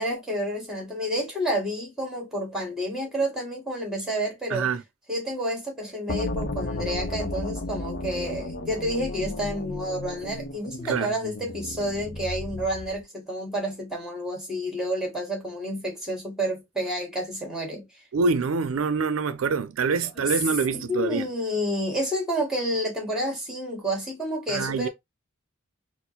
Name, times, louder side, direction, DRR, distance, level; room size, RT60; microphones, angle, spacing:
voice 1, 0.0-4.7 5.1-17.9 19.8-20.2 20.7-24.9, equal, 5° right, 1.9 m, -30 dB
voice 2, 4.5-4.8 10.8-11.1 18.1-21.3 24.5-24.9, right 4 dB, 85° right, 0.5 m, -25 dB
sound 1, 6.1-13.0, left 2 dB, 50° left, 0.7 m, -33 dB
4.2 x 2.0 x 4.2 m
head